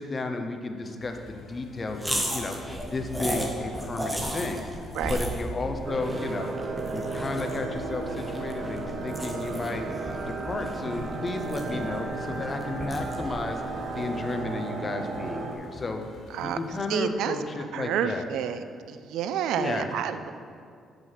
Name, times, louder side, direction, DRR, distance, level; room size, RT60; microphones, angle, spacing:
voice 1, 0.0-2.6 2.9-4.7 5.1-9.9 10.3-13.6 13.9-16.0 16.4-18.2 19.6-19.9, left 3 dB, 25° left, 5 dB, 0.7 m, -33 dB
sound 1, 1.0-17.0, left 3 dB, 60° left, 1.0 m, -48 dB
sound 2, 2.0-14.4, equal, 5° right, 1.0 m, -36 dB
sound 3, 5.8-15.5, right 3 dB, 55° right, 0.8 m, -34 dB
voice 2, 16.9-17.4 17.7-20.3, right 9 dB, 85° right, 11 dB, 0.4 m, -29 dB
7.9 x 6.0 x 5.7 m, 2.3 s
cardioid pair, 130°, 0 cm